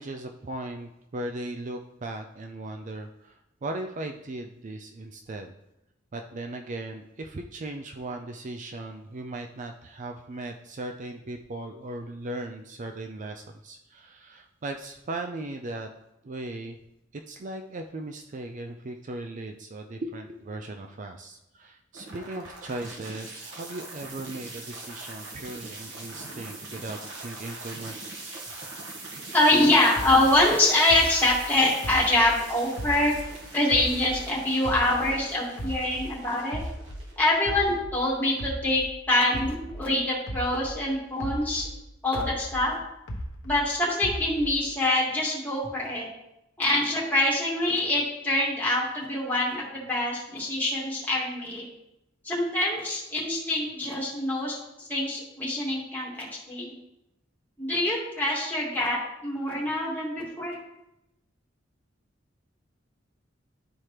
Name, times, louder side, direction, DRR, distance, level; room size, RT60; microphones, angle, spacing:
voice 1, 0.0-5.5 6.1-15.9 16.2-16.8 17.3-28.1, right 2 dB, 40° right, 4 dB, 0.5 m, -37 dB
sound 1, 21.9-38.0, right 2 dB, 75° right, 1.5 m, -42 dB
voice 2, 29.3-33.1 33.5-36.6 37.2-41.7 42.0-42.8 43.4-46.1 46.6-51.7 52.2-56.7 57.6-60.6, left 1 dB, 10° left, -5 dB, 2.2 m, -25 dB
sound 2, 30.0-33.4 33.7-36.2 36.5-40.9 41.2-43.7 44.0-44.7, equal, 85° left, 0.9 m, -36 dB
12.5 x 4.4 x 3.2 m, 0.87 s
head